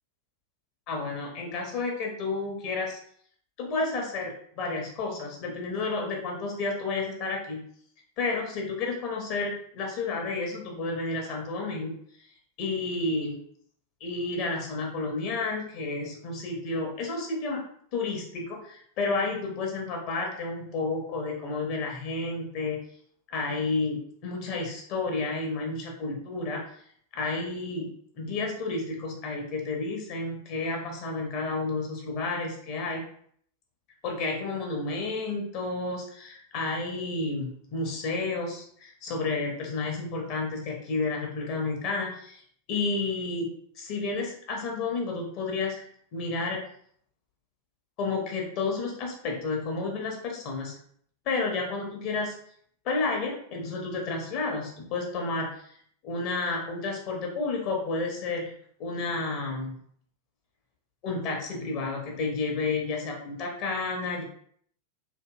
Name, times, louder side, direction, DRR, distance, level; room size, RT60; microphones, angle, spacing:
voice 1, 0.9-3.0 3.6-7.6 8.2-11.9 12.6-13.4 14.0-17.6 17.9-22.8 23.3-26.6 27.1-33.0 34.0-42.4 42.7-46.6 48.0-50.8 51.3-52.3 52.8-55.5 56.0-58.5 58.8-59.8 61.0-64.2, left 3 dB, 40° left, 0 dB, 0.6 m, -31 dB
2.7 x 2.6 x 2.3 m, 0.63 s
figure-of-eight pair, 90°, 0 cm